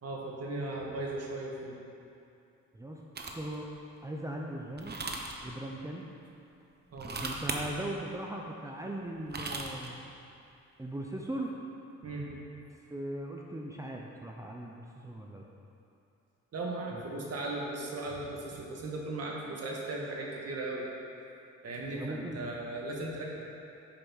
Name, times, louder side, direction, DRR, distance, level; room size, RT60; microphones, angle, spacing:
voice 1, 0.0-1.8 6.9-7.1 12.0-12.3 16.5-20.9 21.6-23.2, right 2 dB, 55° right, -2 dB, 1.9 m, -37 dB
sound 1, 3.2-3.5 4.8-5.4 6.9-7.6 9.1-9.9, right 3 dB, 35° right, 1.1 m, -37 dB
voice 2, 3.3-3.7 4.0-5.0 5.4-6.1 7.0-10.0 10.8-11.5 12.9-15.5 16.9-17.3 21.9-22.5, right 1 dB, 10° right, -1 dB, 0.7 m, -39 dB
8.6 x 5.6 x 6.3 m, 2.7 s
cardioid pair, 90°, 30 cm